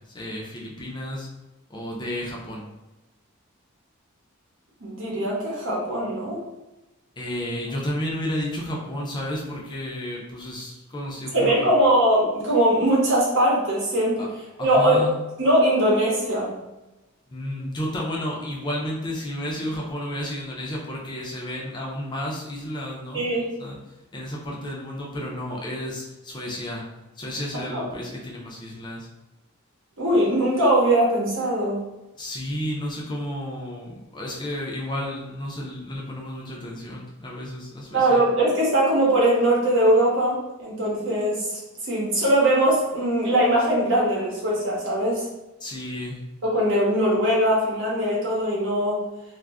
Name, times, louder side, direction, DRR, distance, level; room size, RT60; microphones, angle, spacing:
voice 1, 0.1-1.3 1.7-2.7 7.2-11.7 14.2-14.3 14.6-15.2 17.3-23.2 23.6-23.8 24.1-26.9 27.2-29.1 32.2-38.2 45.6-46.2, equal, 20° left, -2 dB, 0.4 m, -32 dB
voice 2, 4.8-6.4 11.3-14.2 14.6-15.0 15.4-16.5 23.1-23.5 27.5-27.9 30.0-31.8 37.9-45.3 46.4-49.0, right 1 dB, 60° right, -4 dB, 0.9 m, -21 dB
2.3 x 2.0 x 3.4 m, 1.0 s
head